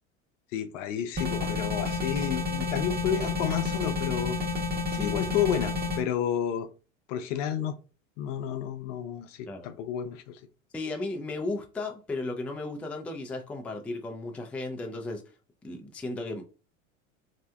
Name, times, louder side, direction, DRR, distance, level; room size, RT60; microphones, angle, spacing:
voice 1, 0.5-4.4 4.9-6.7 7.1-7.8 8.2-10.4, left 9 dB, 65° left, 0.6 m, -31 dB
sound 1, 1.2-6.0, left 3 dB, 25° right, 0.9 m, -30 dB
voice 2, 10.7-15.2 15.6-16.4, left 2 dB, 5° left, 0.3 m, -35 dB
3.2 x 2.7 x 2.3 m
hypercardioid pair, 85°, 39 cm